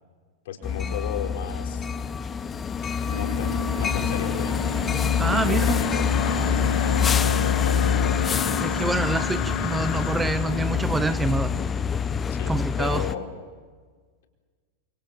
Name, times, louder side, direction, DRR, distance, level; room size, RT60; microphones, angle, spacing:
voice 1, 0.4-1.9 3.0-4.6 5.3-7.9 8.3-8.8 12.3-13.3, left 9 dB, 60° left, 3 dB, 4.6 m, -35 dB
sound 1, 0.6-13.2, left 7 dB, 20° left, 0.9 m, -26 dB
Wind instrument woodwind instrument, 2.9-12.4, left 2 dB, 90° left, 1.0 m, -33 dB
sound 2, 4.2-11.2, left 11 dB, 40° left, 1.7 m, -36 dB
voice 2, 5.2-5.8 8.6-11.5 12.5-13.0, right 3 dB, 10° right, 14 dB, 0.9 m, -26 dB
28.0 x 27.0 x 7.2 m, 1.5 s
figure-of-eight pair, 95°, 0 cm